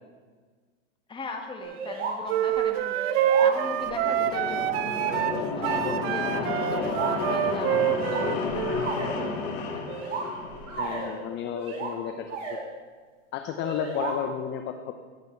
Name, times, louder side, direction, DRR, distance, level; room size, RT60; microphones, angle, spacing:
voice 1, 1.1-3.0 3.4-4.6 5.6-9.9, left 3 dB, 15° left, 3 dB, 1.7 m, -39 dB
sound 1, 1.6-2.2 2.5-2.6 2.9-3.9 4.8-5.8 6.6-7.2 7.9-9.1 9.9-11.2 11.5-11.9 12.3-12.6 13.6-14.1, right 4 dB, 90° right, 4.8 m, -34 dB
sound 2, 2.3-8.8, right 11 dB, 55° right, 1.0 m, -26 dB
sound 3, 3.3-11.2, left 4 dB, 60° left, 2.8 m, -32 dB
voice 2, 10.8-12.6 13.3-14.9, left 8 dB, 30° left, 6 dB, 0.9 m, -32 dB
17.0 x 10.5 x 4.7 m, 1.5 s
supercardioid pair, 140°, 37 cm